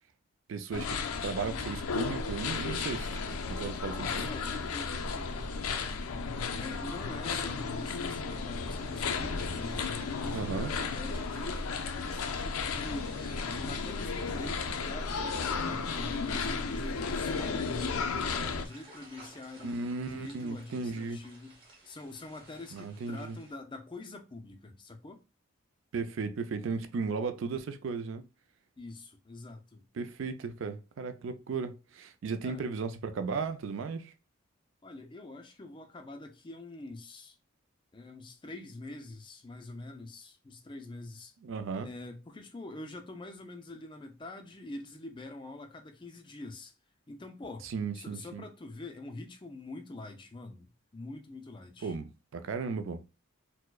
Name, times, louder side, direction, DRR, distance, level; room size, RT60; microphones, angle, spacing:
voice 1, 0.5-4.3 10.3-10.7 19.6-21.2 22.7-23.4 25.9-28.2 30.0-34.1 41.4-41.9 47.6-48.4 51.8-53.1, right 4 dB, 65° right, 0.4 m, -36 dB
sound 1, 0.7-18.7, left 4 dB, 90° left, 0.4 m, -34 dB
voice 2, 3.8-6.1 6.5-19.8 20.1-21.6 21.8-25.2 28.8-29.8 32.4-32.6 34.8-37.4 37.9-41.3 41.8-46.7 47.1-47.7 47.9-50.7 50.9-51.9, left 2 dB, 25° left, 0.3 m, -45 dB
sound 2, 8.7-23.5, right 2 dB, 25° right, 0.9 m, -57 dB
4.5 x 2.1 x 2.2 m
head